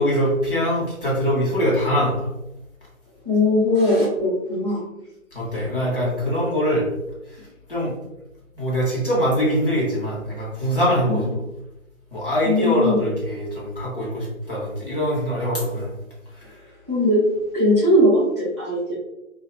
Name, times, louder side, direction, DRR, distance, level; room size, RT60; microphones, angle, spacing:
voice 1, 0.0-2.3 5.3-6.8 7.3-7.4 7.7-7.9 8.5-11.2 12.1-15.9 16.4-16.6, equal, 40° left, -5 dB, 1.0 m, -23 dB
voice 2, 3.2-4.8 11.1-11.2 12.4-13.0 16.9-17.2 17.5-18.9, left 1 dB, 20° right, -12 dB, 0.7 m, -19 dB
2.7 x 2.3 x 3.0 m, 0.94 s
figure-of-eight pair, 155°, 42 cm